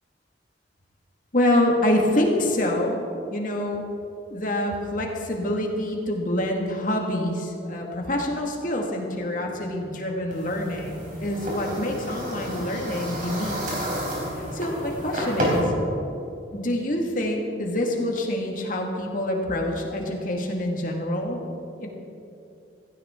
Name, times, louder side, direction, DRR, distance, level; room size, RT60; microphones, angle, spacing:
voice 1, 1.3-3.0 3.3-3.9 4.3-13.8 14.5-15.7 16.5-21.4 21.8-21.9, left 1 dB, 45° left, 0 dB, 1.9 m, -26 dB
sound 1, 10.3-15.6, equal, 45° right, 4.1 m, -30 dB
16.0 x 15.5 x 3.7 m, 2.6 s
head